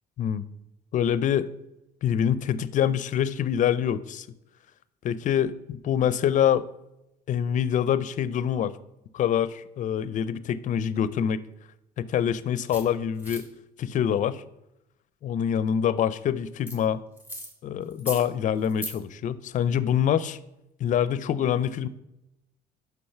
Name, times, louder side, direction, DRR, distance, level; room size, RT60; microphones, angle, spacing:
voice 1, 0.9-1.5 2.0-4.3 5.0-6.7 7.3-8.7 9.1-11.4 12.0-13.5 13.8-14.4 15.2-17.0 17.6-20.4 20.8-21.9, left 9 dB, 50° left, 17 dB, 0.4 m, -25 dB
sound 1, 12.7-12.8 13.2-13.4 16.7-16.8 17.2-17.5 17.9-18.2 18.6-18.9, equal, 10° right, 1.8 m, -37 dB
6.0 x 5.5 x 5.6 m, 0.88 s
cardioid pair, 110°, 17 cm